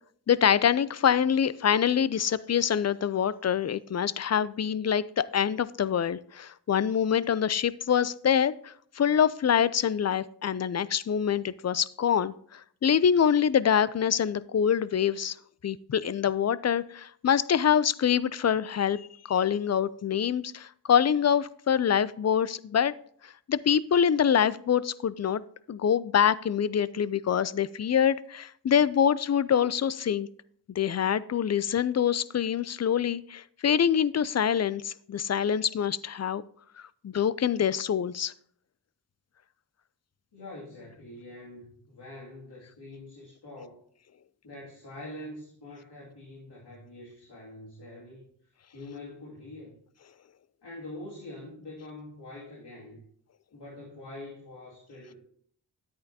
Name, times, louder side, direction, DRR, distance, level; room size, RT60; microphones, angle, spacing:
voice 1, 0.3-15.4 15.6-22.9 23.5-25.4 25.7-30.3 30.7-36.4 37.0-38.3, left 8 dB, 40° left, 18 dB, 0.4 m, -25 dB
voice 2, 40.3-43.8 44.4-48.2 48.7-49.7 50.6-53.0 53.5-55.2, left 1 dB, 75° left, -5 dB, 2.4 m, -44 dB
10.5 x 8.6 x 2.8 m, 0.62 s
cardioid pair, 45°, 41 cm